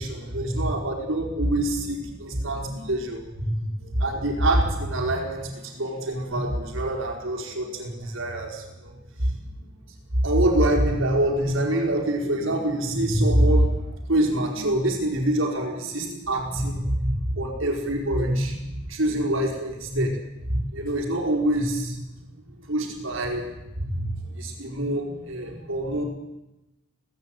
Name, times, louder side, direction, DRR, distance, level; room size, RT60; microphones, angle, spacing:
voice 1, 0.0-26.0, right 1 dB, 80° right, 1 dB, 4.7 m, -25 dB
18.0 x 15.5 x 9.3 m, 0.96 s
head